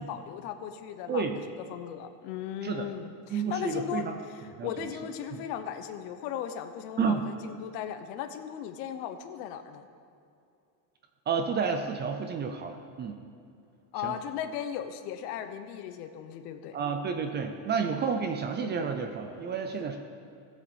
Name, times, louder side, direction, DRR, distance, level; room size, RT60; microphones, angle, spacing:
voice 1, 0.0-1.3 1.6-9.9 13.9-16.8, left 9 dB, 75° left, 9 dB, 1.0 m, -37 dB
voice 2, 3.3-4.2 4.6-4.7 5.3-5.4 7.0-7.2 11.3-13.2 14.0-14.1 16.7-20.0, right 6 dB, 25° right, 6 dB, 0.4 m, -30 dB
17.0 x 7.4 x 4.2 m, 2.5 s
cardioid pair, 150°, 47 cm